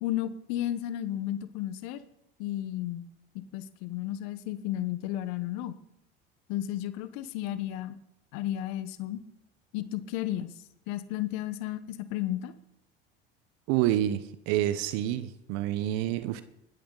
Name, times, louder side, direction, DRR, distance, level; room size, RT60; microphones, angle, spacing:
voice 1, 0.0-2.0 2.4-3.1 3.3-5.7 6.5-8.0 8.3-9.2 9.7-10.5 10.9-12.5, left 13 dB, 65° left, 1.1 m, -33 dB
voice 2, 13.7-16.4, right 13 dB, 65° right, 1.0 m, -28 dB
20.5 x 13.0 x 4.0 m
hypercardioid pair, 75°, 30 cm